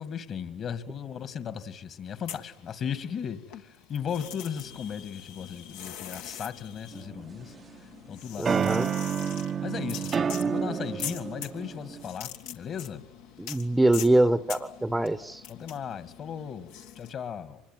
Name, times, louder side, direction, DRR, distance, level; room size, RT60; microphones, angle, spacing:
voice 1, 0.0-7.5 8.1-8.7 9.6-13.0 15.5-17.6, left 8 dB, 50° left, 11 dB, 2.2 m, -36 dB
sound 1, 2.1-3.2 3.5-17.1, left 9 dB, 75° left, 1.8 m, -43 dB
sound 2, 6.9-7.8 8.4-12.1, right 7 dB, 35° right, 0.9 m, -29 dB
voice 2, 8.4-8.9 13.4-15.4, right 1 dB, 10° right, 14 dB, 1.0 m, -24 dB
25.0 x 21.0 x 9.3 m, 0.88 s
hypercardioid pair, 75°, 0 cm